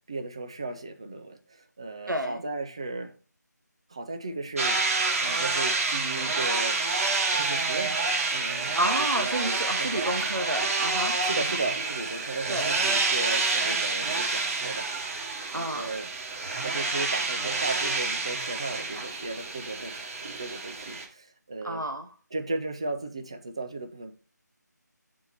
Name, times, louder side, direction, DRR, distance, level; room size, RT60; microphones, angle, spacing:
voice 1, 0.1-3.1 3.9-4.8 5.2-6.8 7.3-8.0 8.3-8.8 9.1-10.1 11.2-16.1 16.6-21.8 22.3-24.1, right 3 dB, 20° right, 7 dB, 0.4 m, -36 dB
voice 2, 2.1-2.4 8.7-11.2 11.5-11.6 12.5-12.7 15.5-15.9 21.6-22.1, right 1 dB, 85° right, 6 dB, 0.8 m, -30 dB
sound 1, 4.6-21.1, right 3 dB, 50° right, 1.6 m, -28 dB
6.7 x 4.3 x 4.2 m, 0.38 s
figure-of-eight pair, 160°, 10 cm